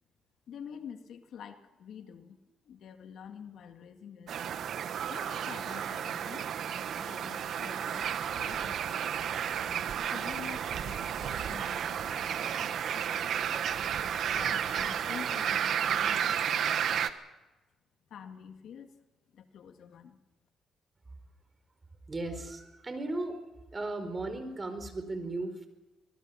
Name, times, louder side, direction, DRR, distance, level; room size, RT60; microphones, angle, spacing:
voice 1, 0.5-2.4 2.6-4.4 5.1-6.6 6.9-9.3 10.1-13.5 14.1-17.0 18.1-18.9 19.3-20.2, left 8 dB, 70° left, 6 dB, 2.2 m, -48 dB
sound 1, 4.3-17.1, right 8 dB, 70° right, 1.3 m, -32 dB
voice 2, 22.1-23.4 23.7-25.7, right 2 dB, 25° right, 9 dB, 4.6 m, -36 dB
25.5 x 21.0 x 5.9 m, 1.1 s
cardioid pair, 90°, 0 cm